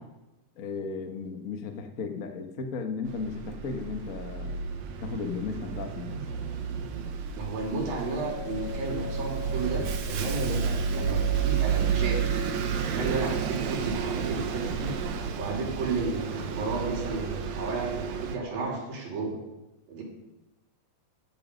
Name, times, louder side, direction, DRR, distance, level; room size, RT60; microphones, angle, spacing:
voice 1, 0.6-4.6 5.0-6.2, left 5 dB, 80° left, 4 dB, 0.7 m, -35 dB
Bus, 3.1-18.4, right 7 dB, 65° right, 2.0 m, -31 dB
voice 2, 7.4-12.3 12.8-15.0 15.4-19.4 19.9-20.0, right 3 dB, 90° right, -1 dB, 5.0 m, -33 dB
sound 1, 8.0-12.9, left 8 dB, 55° left, 2.6 m, -41 dB
16.5 x 11.5 x 5.2 m, 0.99 s
omnidirectional pair, 4.0 m